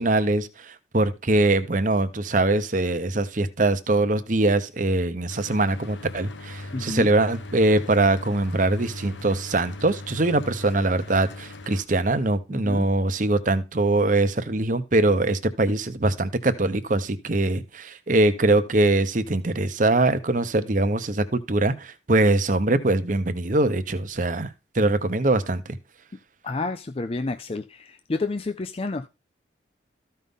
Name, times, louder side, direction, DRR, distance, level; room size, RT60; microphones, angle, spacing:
voice 1, 0.0-24.5 24.7-25.8, right 2 dB, 45° right, 0.8 m, -22 dB
Mechanical fan, 5.3-11.8, left 2 dB, 75° left, 1.1 m, -39 dB
voice 2, 6.7-7.1 12.5-12.9 26.4-29.1, left 3 dB, 30° left, 0.4 m, -30 dB
13.5 x 5.5 x 3.7 m
head